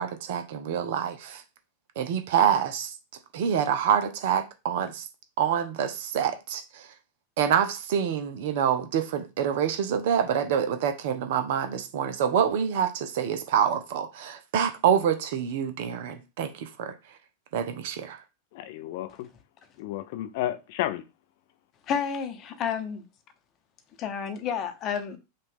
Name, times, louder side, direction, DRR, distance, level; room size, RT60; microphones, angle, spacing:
voice 1, 0.0-1.4 2.0-2.9 3.3-5.1 5.4-6.9 7.4-16.9 17.5-18.2, right 8 dB, 50° right, 0.7 m, -26 dB
voice 2, 18.5-19.3 19.8-21.0, left 14 dB, 50° left, 0.5 m, -32 dB
voice 3, 21.9-23.0 24.0-25.2, left 7 dB, 35° left, 0.9 m, -30 dB
5.4 x 2.5 x 3.5 m
figure-of-eight pair, 90°, 0 cm